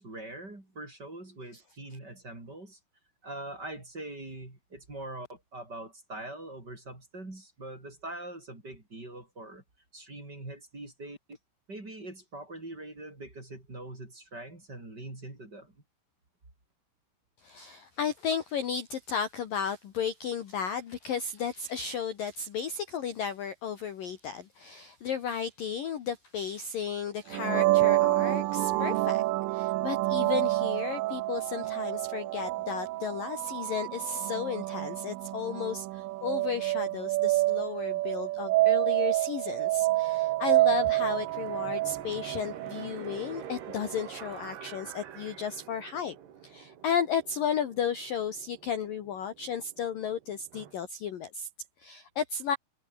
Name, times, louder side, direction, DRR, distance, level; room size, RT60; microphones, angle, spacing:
voice 1, 0.0-2.8 3.2-9.6 9.9-11.4 11.7-15.8, right 2 dB, 20° right, 5.9 m, -43 dB
voice 2, 17.4-29.2 29.5-46.2 46.4-51.5 51.8-52.6, left 7 dB, 55° left, 2.8 m, -34 dB
sound 1, 27.3-42.9, right 18 dB, 85° right, 3.5 m, -28 dB
sound 2, 40.1-50.7, right 9 dB, 60° right, 4.5 m, -46 dB
omnidirectional pair, 5.8 m